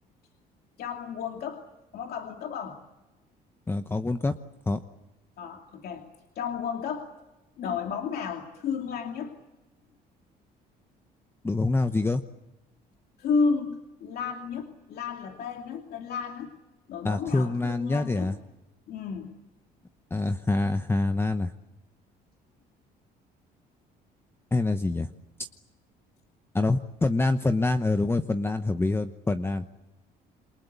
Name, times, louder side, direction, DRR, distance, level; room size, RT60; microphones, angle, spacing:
voice 1, 0.8-1.6 1.9-2.8 5.4-6.0 6.4-7.1 7.6-9.3 13.2-16.5 16.9-18.3 18.9-19.3, left 5 dB, 65° left, 3 dB, 2.6 m, -32 dB
voice 2, 3.7-4.3 4.7-4.8 11.4-12.2 17.0-18.4 20.1-21.5 24.5-25.1 26.5-29.7, left 2 dB, 15° left, 9 dB, 0.9 m, -26 dB
28.0 x 24.0 x 8.2 m, 1.1 s
cardioid pair, 110°, 17 cm